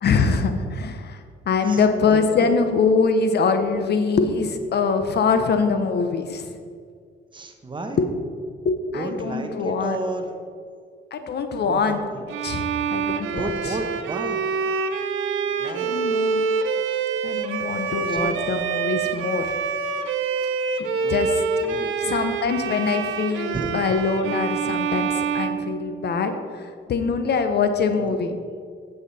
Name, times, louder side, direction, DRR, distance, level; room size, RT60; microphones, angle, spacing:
voice 1, 0.0-6.6 8.0-8.1 8.6-10.0 11.1-12.0 12.4-13.8 15.6-16.5 17.2-19.6 20.8-21.3 22.0-28.4, left 5 dB, 55° left, 7 dB, 0.8 m, -23 dB
voice 2, 1.6-2.5 7.3-8.0 8.9-10.4 11.6-12.3 13.1-14.4 15.6-15.9 18.1-18.4 21.0-21.2 21.6-22.0 23.5-23.7 28.0-28.2, right 2 dB, 25° right, 5 dB, 1.1 m, -32 dB
Bowed string instrument, 12.3-26.4, right 5 dB, 80° right, 0.6 m, -26 dB
9.2 x 7.4 x 4.2 m, 2.1 s
cardioid pair, 90°, 20 cm